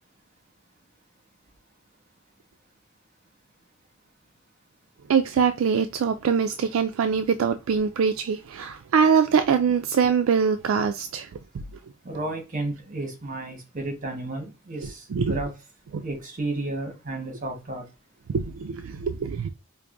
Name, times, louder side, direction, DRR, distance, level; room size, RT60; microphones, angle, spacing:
voice 1, 5.1-11.3 15.1-15.3 15.9-16.0 18.3-19.5, right 6 dB, 75° right, 0.4 m, -23 dB
voice 2, 12.0-15.5 16.0-17.8, right 2 dB, 40° right, 1.3 m, -32 dB
4.7 x 2.5 x 2.5 m
head